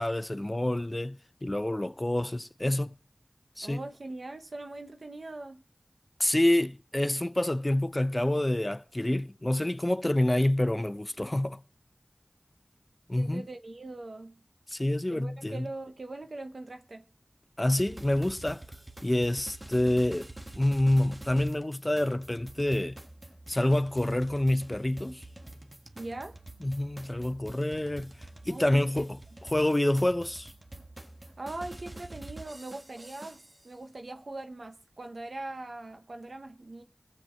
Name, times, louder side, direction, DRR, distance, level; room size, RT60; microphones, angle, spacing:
voice 1, 0.0-2.9 3.6-3.8 6.2-11.6 13.1-13.4 14.7-15.7 17.6-18.6 19.0-20.3 20.6-23.0 23.5-25.2 26.6-28.1 28.5-29.2 29.5-30.5, left 1 dB, 25° left, 0.6 m, -27 dB
voice 2, 3.6-5.6 13.1-14.4 15.1-17.0 25.9-26.4 28.5-29.1 31.4-36.8, right 2 dB, 80° right, 0.9 m, -41 dB
sound 1, 17.8-33.7, right 2 dB, 35° right, 1.4 m, -47 dB
21.5 x 7.7 x 4.5 m
wide cardioid pair, 50°, 0 cm